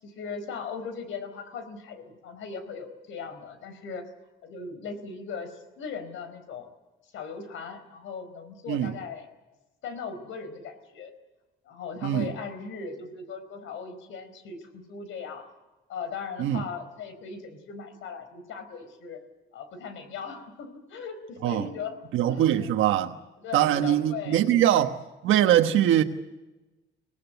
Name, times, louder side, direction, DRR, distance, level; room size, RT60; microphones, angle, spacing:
voice 1, 0.0-4.0 4.4-6.7 7.1-9.3 9.8-11.1 11.7-15.5 15.9-19.2 19.5-22.0 22.3-22.7 23.4-24.7, left 5 dB, 85° left, 4.5 m, -38 dB
voice 2, 12.0-12.3 16.4-16.6 21.4-21.7 22.1-23.1 23.5-24.9 25.2-26.0, right 11 dB, 85° right, 1.2 m, -22 dB
25.0 x 18.5 x 8.3 m
cardioid pair, 90°, 20 cm